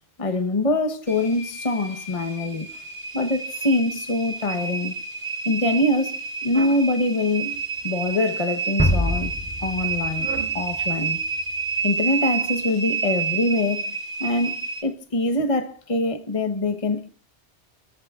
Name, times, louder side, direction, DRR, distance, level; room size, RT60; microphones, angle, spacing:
voice 1, 0.2-2.7 3.1-4.9 5.4-7.6 7.8-9.3 9.6-11.2 11.8-13.8 14.2-17.1, left 2 dB, 30° left, 1.2 m, -24 dB
sound 1, 1.1-14.8, right 5 dB, 40° right, 4.6 m, -29 dB
sound 2, 6.5-6.9 7.5-8.2 8.9-9.2 10.1-10.6, right 5 dB, 90° right, 1.9 m, -38 dB
sound 3, 8.8-11.6, equal, 5° left, 3.3 m, -26 dB
29.0 x 14.0 x 2.4 m
omnidirectional pair, 1.2 m